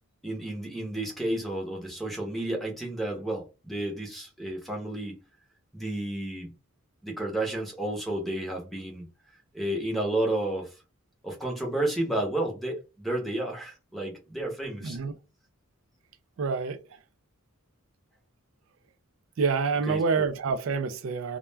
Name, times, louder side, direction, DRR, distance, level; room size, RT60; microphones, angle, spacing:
voice 1, 0.2-5.2 5.7-6.5 7.0-9.1 9.3-10.8 11.2-15.0 19.9-20.3, right 1 dB, ahead, 0.7 m, -31 dB
voice 2, 14.8-15.1 16.4-17.0 19.4-21.4, right 5 dB, 60° right, 0.4 m, -27 dB
2.3 x 2.1 x 3.2 m
head